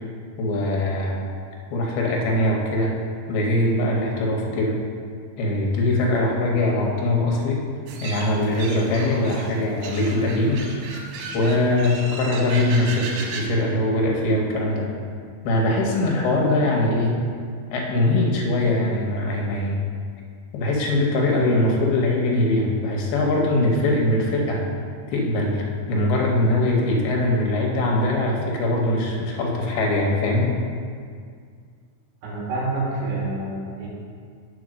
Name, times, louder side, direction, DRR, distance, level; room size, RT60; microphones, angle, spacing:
voice 1, 0.4-1.2 1.7-2.9 3.3-4.8 5.4-7.6 8.0-10.7 11.3-14.9 15.4-17.2 17.7-19.8 20.5-24.6 25.1-30.5, left 1 dB, 75° left, -2 dB, 2.3 m, -22 dB
sound 1, 7.9-13.4, right 3 dB, 85° right, 3.5 m, -35 dB
voice 2, 32.2-33.9, right 2 dB, 65° right, -5 dB, 3.5 m, -27 dB
8.5 x 4.7 x 6.3 m, 2.1 s
omnidirectional pair, 5.7 m